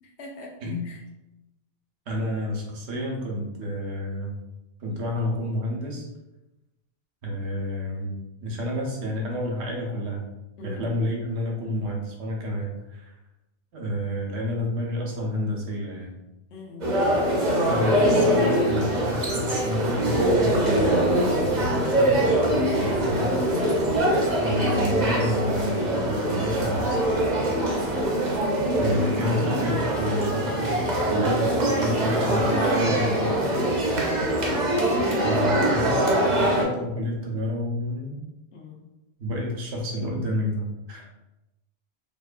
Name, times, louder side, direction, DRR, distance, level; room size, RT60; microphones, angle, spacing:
voice 1, 0.0-0.5 0.8-1.0 10.6-10.8 16.5-16.9 38.5-38.8, left 4 dB, 85° left, -1 dB, 0.9 m, -42 dB
voice 2, 2.1-4.3 4.8-6.1 7.2-8.1 8.4-10.3 10.6-13.1 13.7-16.1 17.5-23.3 24.4-27.0 28.8-33.6 35.2-38.2 39.2-41.1, left 1 dB, 90° right, -1 dB, 1.0 m, -30 dB
sound 1, 16.8-36.6, right 1 dB, 50° right, 0.6 m, -23 dB
2.7 x 2.1 x 2.4 m, 0.97 s
omnidirectional pair, 1.1 m